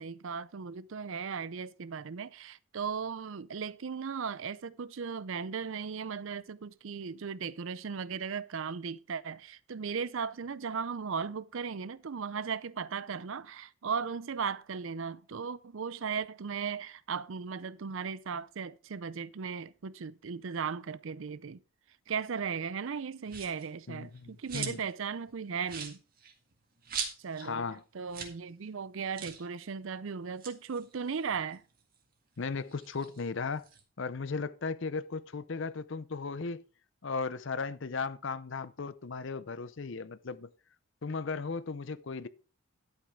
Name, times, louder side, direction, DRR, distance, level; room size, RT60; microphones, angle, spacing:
voice 1, 0.0-21.6 22.1-26.0 27.2-27.6 27.9-31.6, right 6 dB, 65° right, 0.5 m, -37 dB
sound 1, 23.3-23.7 24.1-25.0 25.3-25.4 25.6-27.5 27.8-27.9 28.1-28.4 28.7-28.8 29.1-29.5 30.2-32.0 32.4-33.8, right 6 dB, 40° right, 1.9 m, -41 dB
voice 2, 23.9-24.8 27.4-27.8 32.4-33.6 34.0-36.6 37.0-40.5 41.0-42.3, left 4 dB, 55° left, 0.6 m, -36 dB
12.0 x 8.4 x 3.6 m
head